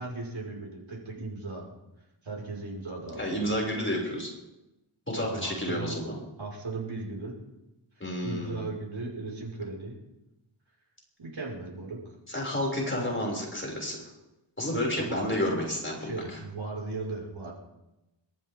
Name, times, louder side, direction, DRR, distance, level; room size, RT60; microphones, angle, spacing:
voice 1, 0.0-1.7 2.2-3.6 5.2-5.9 6.4-7.4 8.2-10.0 11.2-12.0 15.0-15.3 16.0-17.5, right 3 dB, 70° right, -3 dB, 5.7 m, -37 dB
voice 2, 3.2-4.3 5.1-6.2 8.0-8.6 12.3-14.1 14.6-16.2, left 1 dB, 25° left, -2 dB, 6.6 m, -30 dB
26.5 x 14.0 x 3.8 m, 0.96 s
cardioid pair, 50°, 49 cm